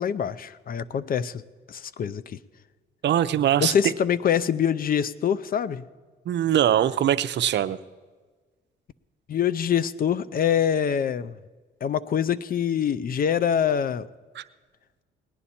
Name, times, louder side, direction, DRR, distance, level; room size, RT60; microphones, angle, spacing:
voice 1, 0.0-1.4 1.7-2.4 3.6-5.8 9.3-11.3 11.8-14.1, left 8 dB, 50° left, 15 dB, 0.5 m, -25 dB
voice 2, 3.0-3.7 6.3-7.8 14.4-14.5, right 11 dB, 60° right, 13 dB, 0.6 m, -22 dB
19.0 x 9.9 x 4.2 m, 1.4 s
cardioid pair, 90°, 20 cm